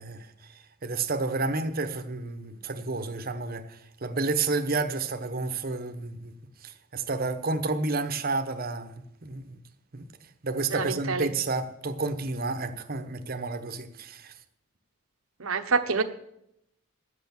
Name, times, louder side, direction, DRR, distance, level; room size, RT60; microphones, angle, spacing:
voice 1, 0.0-6.3 6.6-8.9 9.2-9.6 9.9-10.1 10.4-14.3, right 3 dB, 45° right, 0.9 m, -31 dB
voice 2, 10.7-11.3 15.4-16.0, right 4 dB, 75° right, 1.0 m, -27 dB
11.5 x 8.2 x 7.1 m
head